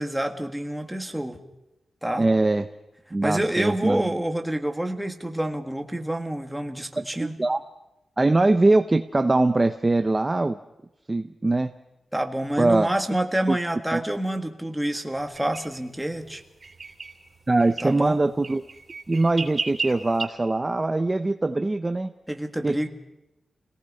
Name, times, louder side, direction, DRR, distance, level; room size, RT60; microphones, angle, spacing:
voice 1, 0.0-1.4 2.0-2.3 3.2-7.4 12.1-16.4 17.8-18.2 22.3-22.9, right 1 dB, 5° right, 4 dB, 1.7 m, -28 dB
voice 2, 2.2-2.7 3.1-4.1 7.2-7.6 8.2-10.6 11.1-11.7 12.6-12.9 13.5-13.6 13.9-14.0 17.5-18.6 19.1-22.1 22.6-22.8, right 2 dB, 20° right, 8 dB, 0.7 m, -22 dB
sound 1, 15.3-15.7 16.6-17.2 17.6-17.9 18.4-20.3, right 4 dB, 40° right, 3.2 m, -33 dB
28.5 x 18.5 x 5.5 m, 0.95 s
wide cardioid pair, 150°, 0 cm